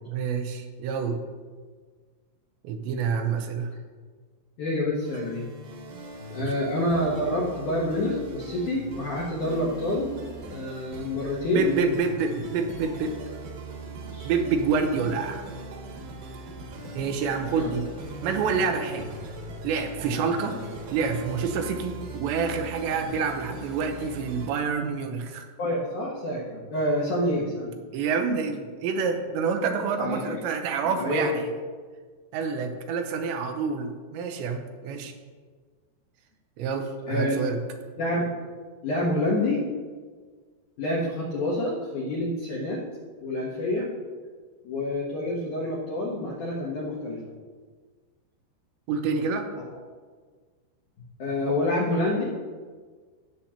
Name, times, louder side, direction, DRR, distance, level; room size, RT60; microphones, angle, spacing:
voice 1, 0.1-1.2 2.6-3.7 6.4-6.5 11.5-13.2 14.2-15.4 17.0-17.9 18.2-19.1 19.6-20.6 20.9-25.5 27.9-31.5 32.3-35.1 36.6-37.6 48.9-49.5, right 5 dB, 80° right, 5 dB, 2.9 m, -27 dB
voice 2, 4.6-5.4 6.3-10.1 10.5-11.7 14.1-14.3 17.5-17.7 25.6-27.8 30.0-30.4 30.8-31.3 37.1-37.4 38.0-38.3 38.8-39.7 40.8-42.8 43.2-43.9 44.6-47.2 51.2-52.2, left 1 dB, 65° left, -5 dB, 1.9 m, -27 dB
sound 1, 5.0-24.5, right 2 dB, 65° right, 2.9 m, -40 dB
17.5 x 7.0 x 2.9 m, 1.5 s
omnidirectional pair, 5.3 m